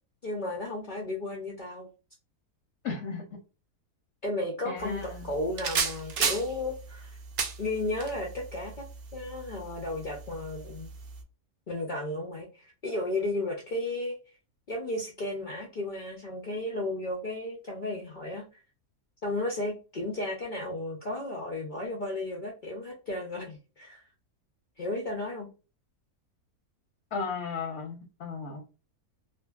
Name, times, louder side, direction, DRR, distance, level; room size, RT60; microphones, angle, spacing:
voice 1, 0.2-1.9 4.2-7.2 7.6-8.9 9.1-10.9 11.7-14.2 14.7-18.5 19.2-24.0 24.8-25.5, left 1 dB, 90° left, 0.4 m, -34 dB
voice 2, 2.8-3.4 4.6-5.3 27.1-28.6, left 5 dB, 65° left, 0.7 m, -35 dB
sound 1, 4.8-11.2, right 6 dB, 75° right, 0.5 m, -35 dB
2.6 x 2.5 x 2.3 m
omnidirectional pair, 1.6 m